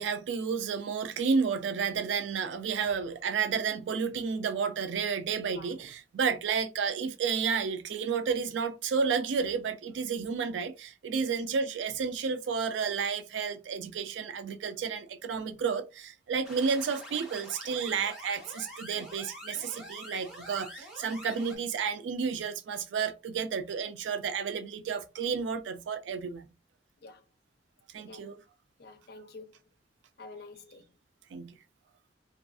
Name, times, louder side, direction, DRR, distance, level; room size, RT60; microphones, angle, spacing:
voice 1, 0.0-26.5 27.9-28.4 31.3-31.6, right 6 dB, 85° right, 0.4 m, -31 dB
sound 1, 16.4-21.6, equal, 5° right, 0.9 m, -46 dB
voice 2, 28.0-28.4 28.8-29.5 30.2-30.8, left 3 dB, 60° left, 0.5 m, -48 dB
2.5 x 2.3 x 2.3 m
head